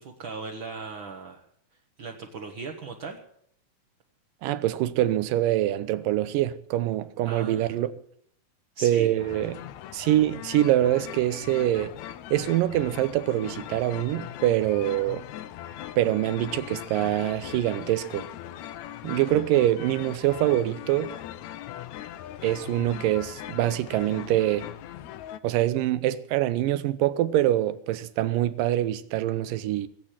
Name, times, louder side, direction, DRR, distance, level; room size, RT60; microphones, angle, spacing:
voice 1, 0.0-1.4 2.0-3.2 7.2-7.8 8.7-9.1, right 4 dB, 55° right, 1.4 m, -38 dB
voice 2, 4.4-7.9 8.8-9.6 9.9-11.9 12.3-15.3 16.0-18.3 19.0-21.1 22.4-24.7 25.4-29.9, right 13 dB, 75° right, 2.4 m, -24 dB
sound 1, 9.2-25.4, left 12 dB, 80° left, 1.6 m, -40 dB
21.0 x 8.4 x 7.4 m
omnidirectional pair, 4.0 m